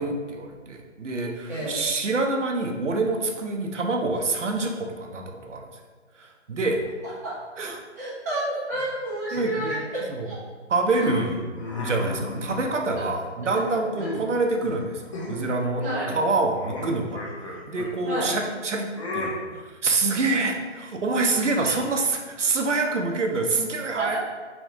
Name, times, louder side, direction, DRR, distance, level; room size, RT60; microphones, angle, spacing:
voice 1, 0.0-5.7 6.2-6.8 7.6-7.8 9.3-9.8 10.1-10.3 10.7-15.8 16.1-17.2 17.5-18.9 19.1-24.2, right 3 dB, 75° right, 2 dB, 0.7 m, -26 dB
voice 2, 7.0-7.4 8.0-10.3 13.0-13.1 15.8-16.1 18.0-18.3 21.5-21.7 24.0-24.2, right 1 dB, 15° right, -10 dB, 0.6 m, -30 dB
sound 1, 10.9-13.0 13.5-14.3 14.6-14.8 15.1-15.5 15.8-18.2 19.0-19.3, left 2 dB, 25° left, 0.6 m, -34 dB
3.6 x 3.0 x 3.6 m, 1.4 s
figure-of-eight pair, 150°, 36 cm